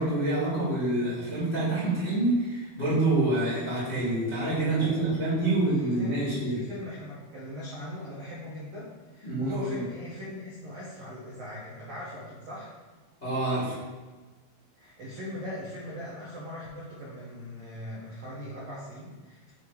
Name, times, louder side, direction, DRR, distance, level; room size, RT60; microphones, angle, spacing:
voice 1, 0.0-6.6 9.2-9.8 13.2-13.8, right 2 dB, 35° left, -10 dB, 1.0 m, -27 dB
voice 2, 4.6-12.7 14.8-19.5, left 1 dB, 80° right, -7 dB, 1.4 m, -40 dB
6.8 x 3.2 x 4.7 m, 1.3 s
omnidirectional pair, 4.6 m